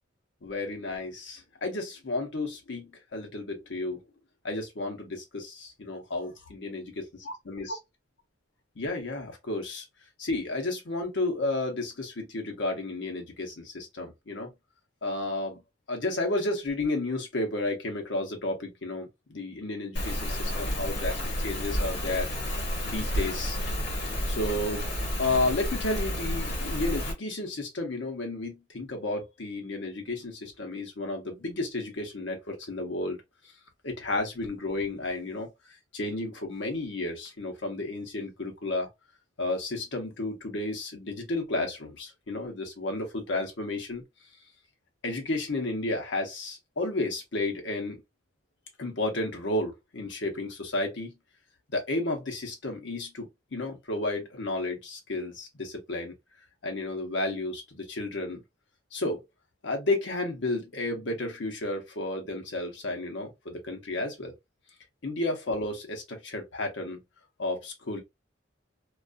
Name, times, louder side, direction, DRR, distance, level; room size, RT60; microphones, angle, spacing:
voice 1, 0.4-4.0 4.4-6.9 7.3-7.7 8.8-9.9 10.2-14.5 15.0-15.6 15.9-22.3 22.8-23.6 24.3-24.9 25.2-33.2 33.8-35.5 35.9-38.9 39.4-44.0 45.0-48.0 48.8-51.1 51.7-56.1 56.6-58.4 58.9-59.2 59.6-64.3 65.0-67.0 67.4-68.0, left 2 dB, 70° left, 0.8 m, -32 dB
Rain, 20.0-27.1, equal, 55° left, 1.2 m, -31 dB
2.5 x 2.4 x 2.2 m
head